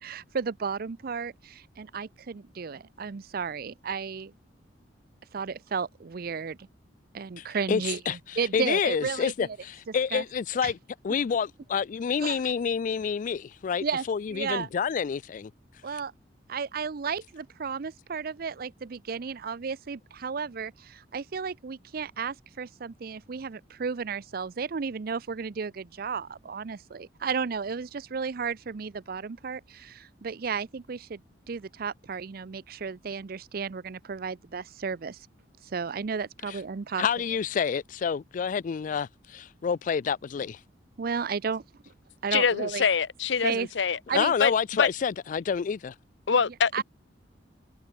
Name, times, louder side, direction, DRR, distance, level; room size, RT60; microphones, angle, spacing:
voice 1, 0.0-4.3 5.3-6.7 7.1-9.6 10.1-10.2 10.6-10.7 12.2-12.4 13.8-14.0 14.3-14.7 15.8-16.1 16.5-31.2 31.5-35.3 35.6-37.0 41.0-41.6 42.2-42.8 43.4-43.7 44.1-44.3 46.7-46.8, right 5 dB, 55° right, 0.5 m, -33 dB
voice 2, 7.4-8.2 8.5-10.8 11.0-15.5 37.0-40.6 44.1-45.9, left 6 dB, 45° left, 0.3 m, -28 dB
voice 3, 42.3-44.0 44.4-44.5 44.8-44.9 46.3-46.8, left 6 dB, 80° left, 0.7 m, -24 dB
head